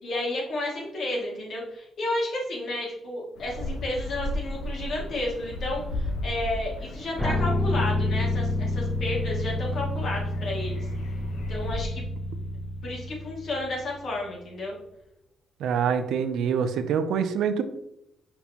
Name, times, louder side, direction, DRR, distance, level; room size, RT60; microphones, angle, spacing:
voice 1, 0.0-10.9 11.5-12.0 12.8-14.8, left 1 dB, 60° left, -3 dB, 2.3 m, -32 dB
sound 1, 3.4-11.8, left 1 dB, 75° left, 1.0 m, -36 dB
sound 2, 7.2-14.1, left 1 dB, ahead, 0.6 m, -29 dB
voice 2, 15.6-17.6, right 7 dB, 80° right, 9 dB, 0.6 m, -25 dB
6.0 x 5.4 x 3.0 m, 0.83 s
cardioid pair, 90°, 0 cm